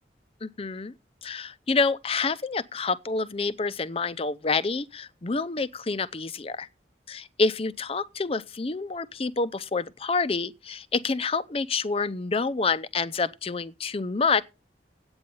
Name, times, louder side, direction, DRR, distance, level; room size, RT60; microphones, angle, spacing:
voice 1, 0.4-0.9 1.2-6.7 7.1-14.4, left 4 dB, 35° left, 0.6 m, -28 dB
9.7 x 8.8 x 5.5 m
head